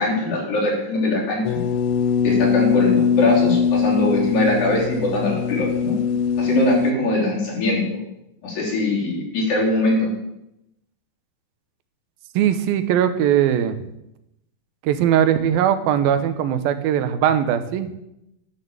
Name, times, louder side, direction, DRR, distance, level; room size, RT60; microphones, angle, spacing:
voice 1, 0.0-1.6 2.2-5.9 6.4-8.0 8.4-10.1, left 2 dB, 70° left, -4 dB, 5.2 m, -22 dB
sound 1, 1.4-6.9, left 6 dB, 85° left, 2.5 m, -21 dB
voice 2, 12.4-13.8 14.8-18.0, right 10 dB, 90° right, 11 dB, 2.7 m, -20 dB
11.5 x 6.7 x 7.3 m, 0.85 s
omnidirectional pair, 4.1 m